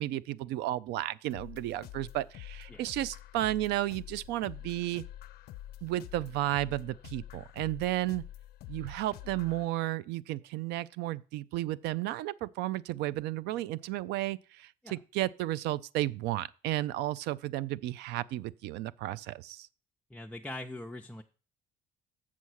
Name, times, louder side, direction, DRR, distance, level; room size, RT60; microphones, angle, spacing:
voice 1, 0.0-5.0 5.8-8.2 8.7-19.7, right 15 dB, 85° right, 0.4 m, -33 dB
sound 1, 1.3-9.7, left 13 dB, 70° left, 0.4 m, -47 dB
voice 2, 20.1-21.2, left 1 dB, 5° left, 0.5 m, -42 dB
7.3 x 5.7 x 6.3 m
cardioid pair, 110°, 17 cm